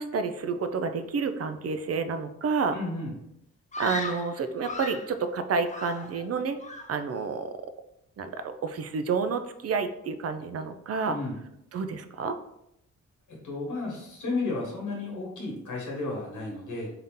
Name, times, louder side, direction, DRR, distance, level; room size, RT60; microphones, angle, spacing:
voice 1, 0.0-2.8 3.8-6.6 6.9-7.5 8.2-11.2 11.7-12.4, right 5 dB, 55° right, 9 dB, 0.5 m, -29 dB
voice 2, 2.7-3.1 11.1-11.4 13.4-16.9, left 2 dB, 90° left, -3 dB, 1.3 m, -33 dB
Screaming, 3.7-5.1 5.7-6.3 6.6-7.0, left 3 dB, 25° left, 0.5 m, -37 dB
3.8 x 2.7 x 3.6 m, 0.80 s
cardioid pair, 95°, 29 cm